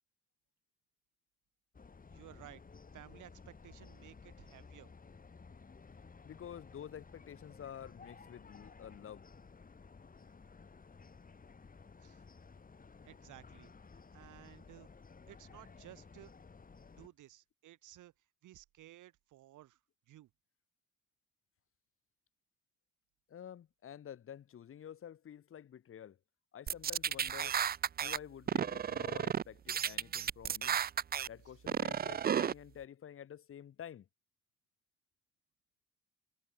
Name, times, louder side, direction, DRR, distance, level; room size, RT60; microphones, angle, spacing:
sound 1, 1.7-17.1, left 4 dB, 30° left, 2.2 m, -56 dB
voice 1, 2.1-4.9 12.0-12.2 13.0-14.9 15.3-16.3 17.0-18.1 18.4-19.8 20.1-20.3 31.5-31.6, right 14 dB, 80° right, 2.1 m, -56 dB
voice 2, 6.2-9.2 23.3-26.2 26.5-27.6 28.0-30.8 31.3-34.1, left 9 dB, 45° left, 0.8 m, -50 dB
sound 2, 26.7-28.2 28.5-29.4 29.7-31.3 31.7-32.5, right 8 dB, 30° right, 0.4 m, -33 dB
cardioid pair, 90°, 30 cm